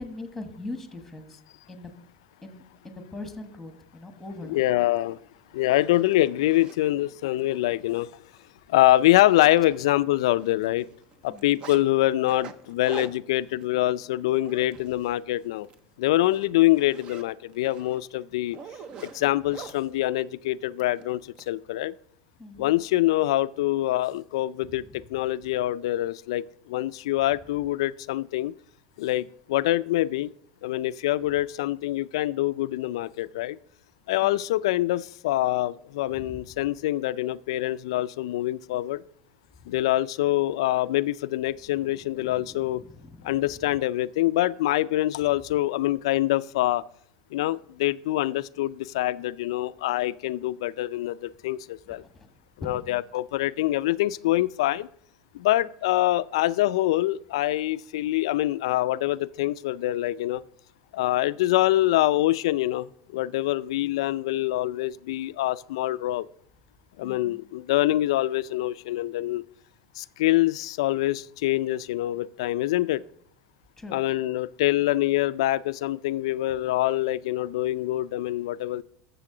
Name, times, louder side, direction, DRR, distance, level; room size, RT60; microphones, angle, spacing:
voice 1, 0.0-1.4 1.7-1.9 2.4-4.6 11.3-11.6 22.4-22.7 24.8-25.0 34.2-34.3 36.1-36.4 41.7-43.3 43.6-43.7 52.0-52.3 52.6-53.0 67.0-67.4 73.8-74.0, left 2 dB, 5° left, 7 dB, 1.2 m, -41 dB
voice 2, 4.4-5.2 5.5-8.1 8.7-10.9 11.2-15.7 16.0-18.6 19.0-21.9 22.6-28.5 29.0-30.3 30.6-33.6 34.1-39.0 39.7-42.8 43.2-46.8 47.3-52.0 52.6-54.9 55.3-60.4 60.9-66.3 67.0-69.4 70.0-73.0 73.9-78.8, left 15 dB, 85° left, 16 dB, 0.4 m, -25 dB
Zipper (clothing), 5.0-5.1 5.5-6.8 7.4-7.5 7.9-8.0 8.4-8.5 8.8-10.2 10.4-11.8 12.2-15.2 15.5-15.8 16.2-19.8 20.8-21.5, right 6 dB, 35° right, 0.7 m, -45 dB
13.5 x 6.9 x 3.8 m, 0.68 s
supercardioid pair, 155°, 3 cm